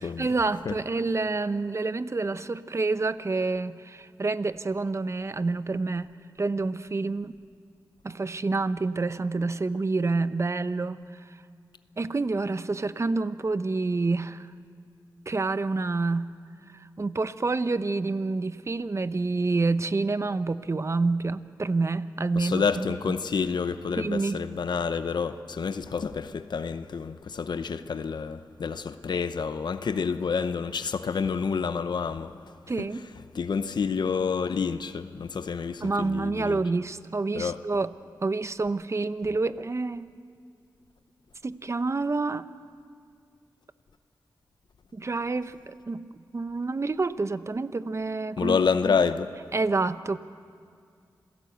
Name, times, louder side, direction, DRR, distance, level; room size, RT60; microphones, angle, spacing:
voice 1, 0.2-6.1 6.4-7.3 8.0-11.4 12.0-14.5 15.3-16.3 16.7-22.9 23.9-24.4 32.7-33.1 35.8-37.9 38.2-40.1 41.4-42.5 44.9-48.6 48.9-49.0 49.5-50.2, right 3 dB, 40° right, 0.8 m, -28 dB
voice 2, 22.4-32.3 32.8-32.9 33.3-36.6 37.4-37.6 48.4-49.3, left 5 dB, 70° left, 0.7 m, -28 dB
27.5 x 17.5 x 8.0 m
cardioid pair, 65°, 8 cm